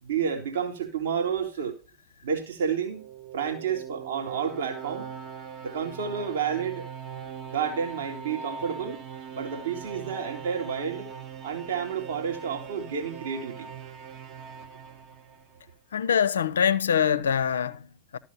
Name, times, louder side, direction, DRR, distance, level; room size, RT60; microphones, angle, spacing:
voice 1, 0.0-1.7 2.2-3.1 3.3-5.1 5.6-6.9 7.5-9.0 9.3-11.1 11.4-13.7, right 7 dB, 60° right, 2.5 m, -30 dB
sound 1, 2.7-15.7, right 7 dB, 35° right, 1.5 m, -41 dB
voice 2, 15.9-18.2, left 7 dB, 65° left, 0.7 m, -24 dB
13.0 x 5.9 x 5.7 m
figure-of-eight pair, 90°, 0 cm